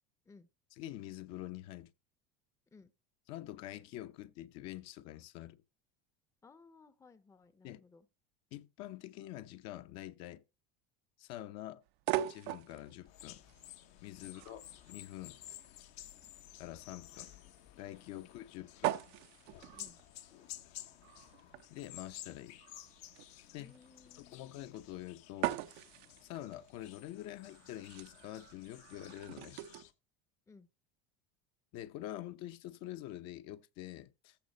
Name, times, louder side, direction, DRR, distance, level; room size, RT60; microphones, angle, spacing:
voice 1, 0.8-1.9 3.3-5.6 7.6-7.8 8.5-10.4 11.2-11.8 12.2-13.4 14.0-15.4 16.6-17.3 17.8-19.0 21.1-21.2 21.7-22.6 23.5-23.7 24.2-25.6 26.2-29.6 31.7-34.4, left 14 dB, 60° left, 0.8 m, -46 dB
voice 2, 6.4-8.1 16.2-16.3 18.2-18.3 19.7-20.0 23.6-24.4 30.5-30.7, left 4 dB, 10° left, 0.6 m, -60 dB
sound 1, 11.9-29.8, right 14 dB, 85° right, 0.8 m, -42 dB
sound 2, 13.1-29.9, left 13 dB, 75° left, 1.2 m, -54 dB
14.5 x 5.1 x 4.1 m
supercardioid pair, 125°, 30 cm